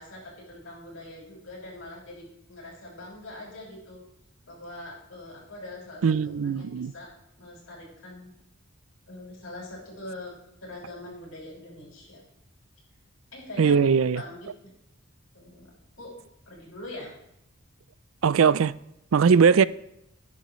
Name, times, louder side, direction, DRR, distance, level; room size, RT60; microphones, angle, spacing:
voice 1, 0.0-4.0 4.4-7.1 7.4-8.3 9.1-10.4 10.6-12.2 13.3-14.5 15.3-15.7 16.0-16.1 16.5-17.1, left 1 dB, 85° left, 6.4 m, -42 dB
voice 2, 6.0-6.9 13.6-14.2 18.2-18.7 19.1-19.7, right 6 dB, 75° right, 0.4 m, -20 dB
21.0 x 10.5 x 3.1 m
head